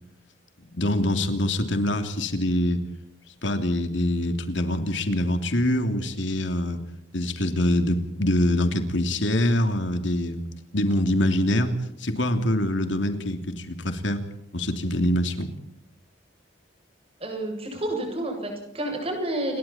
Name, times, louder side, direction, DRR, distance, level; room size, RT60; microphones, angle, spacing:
voice 1, 0.7-2.8 3.4-6.8 7.1-10.4 10.7-11.7 12.0-14.2 14.5-15.5, left 1 dB, 75° left, 6 dB, 3.0 m, -24 dB
voice 2, 17.2-19.6, right 1 dB, 30° right, 3 dB, 8.0 m, -30 dB
29.5 x 22.0 x 4.4 m, 0.83 s
head